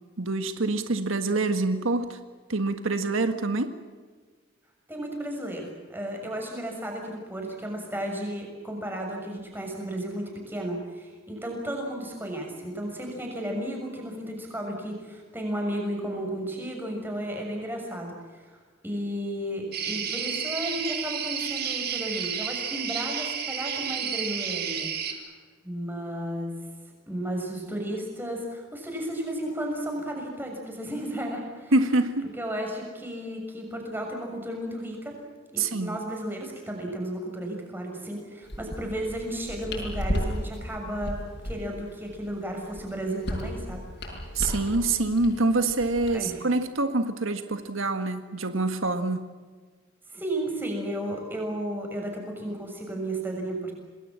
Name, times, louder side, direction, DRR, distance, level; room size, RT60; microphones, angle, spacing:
voice 1, 0.2-2.2 2.5-3.7 31.7-32.3 35.6-36.0 44.3-49.3, right 2 dB, 85° right, 8 dB, 1.7 m, -26 dB
voice 2, 4.9-25.2 25.6-26.6 27.1-31.7 32.4-35.2 35.5-43.8 46.1-46.4 50.1-53.7, right 1 dB, 10° right, 1 dB, 6.5 m, -33 dB
sound 1, 19.7-25.1, right 7 dB, 50° right, 3.1 m, -31 dB
sound 2, 38.4-46.1, equal, 55° left, 7.1 m, -35 dB
27.5 x 20.5 x 7.5 m, 1.5 s
head